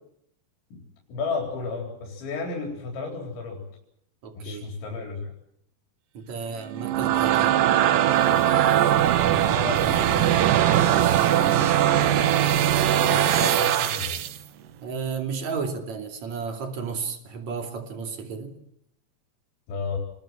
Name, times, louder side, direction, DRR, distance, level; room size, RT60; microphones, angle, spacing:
voice 1, 1.1-3.6 4.3-5.3 9.2-10.2 13.0-14.2 19.7-20.0, left 4 dB, 90° left, 6.2 m, -33 dB
voice 2, 4.2-4.7 6.1-7.6 14.8-18.6, right 5 dB, 45° right, 3.5 m, -33 dB
sound 1, 6.6-14.4, right 11 dB, 65° right, 2.4 m, -21 dB
28.5 x 20.5 x 7.5 m
omnidirectional pair, 5.1 m